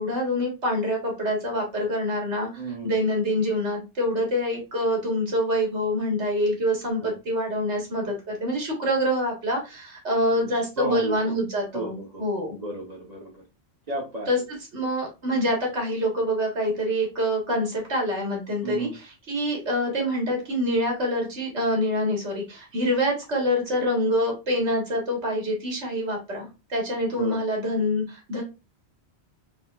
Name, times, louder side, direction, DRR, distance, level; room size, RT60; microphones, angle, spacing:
voice 1, 0.0-12.6 14.3-14.4 14.7-28.4, equal, 90° right, 0 dB, 1.8 m, -26 dB
voice 2, 2.6-2.9 7.0-7.1 10.3-11.1 11.7-13.4 13.9-14.3 18.6-18.9 27.2-27.4, right 2 dB, 40° right, -3 dB, 1.0 m, -33 dB
4.2 x 3.4 x 2.3 m, 0.28 s
omnidirectional pair, 1.1 m